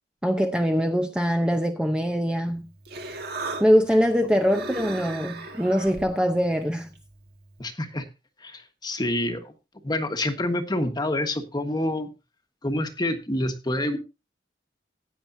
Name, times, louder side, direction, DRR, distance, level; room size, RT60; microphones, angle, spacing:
voice 1, 0.2-2.7 3.6-6.9, equal, 5° right, 0.8 m, -23 dB
Human voice, 2.4-7.6, right 3 dB, 60° right, 2.0 m, -38 dB
voice 2, 7.6-8.0 8.4-9.5 9.8-12.1 12.6-14.0, left 1 dB, 25° left, 1.4 m, -27 dB
16.0 x 9.5 x 2.7 m
head